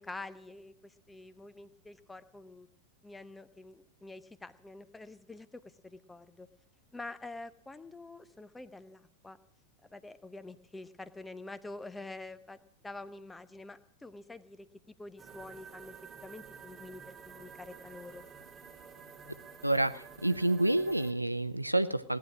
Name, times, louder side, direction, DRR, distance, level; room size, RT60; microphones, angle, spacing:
voice 1, 0.0-2.7 3.0-6.5 6.9-9.4 9.9-12.6 12.8-14.7 15.0-15.9 16.2-18.2, left 2 dB, 10° left, 14 dB, 0.9 m, -47 dB
sound 1, 15.2-21.1, right 6 dB, 15° right, 2.1 m, -51 dB
voice 2, 19.6-22.2, right 1 dB, 90° right, 14 dB, 0.7 m, -28 dB
17.5 x 10.5 x 6.2 m, 0.69 s
figure-of-eight pair, 90°, 0 cm